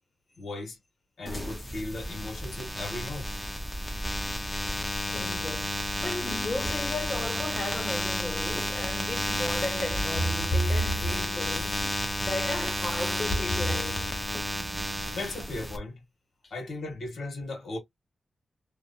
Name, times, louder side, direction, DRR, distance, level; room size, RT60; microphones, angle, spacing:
voice 1, 0.4-0.8 1.2-3.3 15.1-16.0 16.5-17.8, left 2 dB, 75° left, 1.4 m, -37 dB
sound 1, 1.3-15.8, left 1 dB, 10° left, 0.8 m, -32 dB
voice 2, 4.5-11.9 12.2-14.2 16.4-16.5, left 1 dB, 40° left, 1.7 m, -33 dB
2.9 x 2.2 x 2.6 m
cardioid pair, 75°, 0 cm